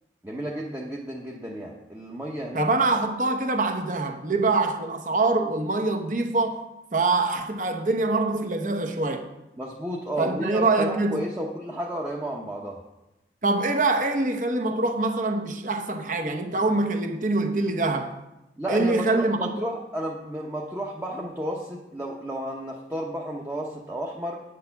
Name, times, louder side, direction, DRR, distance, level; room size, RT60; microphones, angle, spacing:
voice 1, 0.2-2.7 9.6-12.8 18.6-24.4, equal, 10° right, 0.8 m, -32 dB
voice 2, 2.5-6.6 6.9-9.3 10.2-11.2 13.4-18.2 18.7-19.5, right 3 dB, 45° right, 0.9 m, -24 dB
8.8 x 6.5 x 5.8 m
head